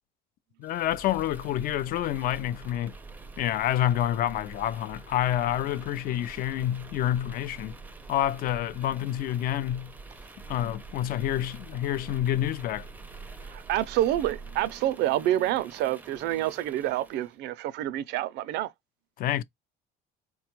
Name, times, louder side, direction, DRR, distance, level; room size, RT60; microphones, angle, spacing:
voice 1, 0.6-2.9 3.4-7.8 8.1-9.9 10.5-12.9 19.2-19.4, left 12 dB, 55° left, 0.4 m, -28 dB
sound 1, 0.6-17.3, right 3 dB, 10° right, 0.4 m, -46 dB
voice 2, 13.4-18.7, right 13 dB, 70° right, 0.4 m, -28 dB
4.1 x 2.2 x 2.9 m
cardioid pair, 140°, 18 cm